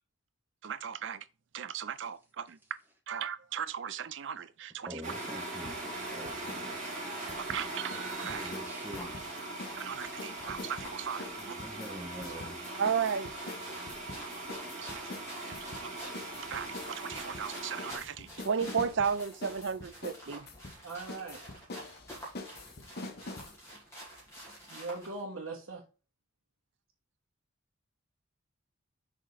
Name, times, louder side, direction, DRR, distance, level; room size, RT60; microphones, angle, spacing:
voice 1, 0.6-1.3 1.5-2.6 3.1-5.1 7.4-8.5 9.7-11.6 12.8-13.3 14.8-15.0 15.4-15.9 16.5-20.5, right 7 dB, 60° right, 0.4 m, -35 dB
voice 2, 4.9-6.8 8.2-9.2 11.3-12.6, equal, 10° right, 1.5 m, -45 dB
sound 1, 5.0-18.0, right 2 dB, 35° right, 2.6 m, -41 dB
sound 2, 5.7-6.7 6.9-9.9 10.2-23.6, left 2 dB, 50° left, 1.0 m, -45 dB
sound 3, 5.7-25.2, right 1 dB, 15° left, 2.5 m, -50 dB
voice 3, 20.8-21.4 24.7-25.8, right 3 dB, 90° right, 1.7 m, -40 dB
6.2 x 4.4 x 3.9 m
head